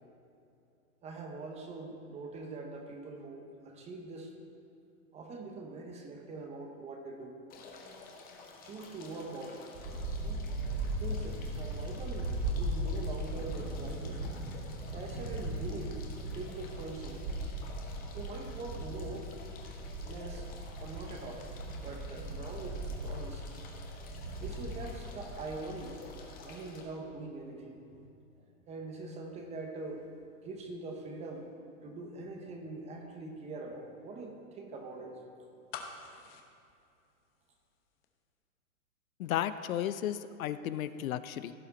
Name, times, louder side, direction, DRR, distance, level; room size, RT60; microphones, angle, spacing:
voice 1, 1.0-4.3 5.1-7.4 8.6-9.6 10.2-10.5 10.9-14.3 14.9-16.0 16.3-17.2 18.1-19.3 20.0-20.5 20.8-23.5 24.3-26.0 26.4-28.0 28.4-30.1 30.4-31.5 31.8-35.2, right 3 dB, 15° right, 3 dB, 0.9 m, -43 dB
sound 1, 7.5-26.8, left 4 dB, 20° left, 1.1 m, -52 dB
sound 2, 9.7-26.4, right 1 dB, 45° right, 2.6 m, -38 dB
sound 3, 35.7-37.7 38.0-38.1, left 6 dB, 40° left, 1.0 m, -46 dB
voice 2, 39.2-41.5, left 11 dB, 70° left, 13 dB, 0.5 m, -34 dB
16.0 x 5.5 x 4.1 m, 2.6 s
hypercardioid pair, 135°, 43 cm